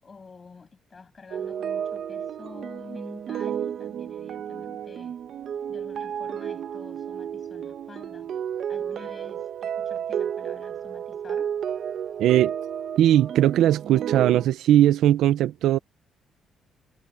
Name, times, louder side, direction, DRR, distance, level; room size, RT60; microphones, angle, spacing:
voice 1, 0.0-5.2 5.7-8.3 8.7-11.5, left 4 dB, 35° left, 7.7 m, -48 dB
sound 1, 1.3-14.5, right 9 dB, 65° right, 1.3 m, -32 dB
voice 2, 12.2-12.5 13.0-15.8, right 12 dB, 85° right, 0.6 m, -19 dB
cardioid pair, 90°, 0 cm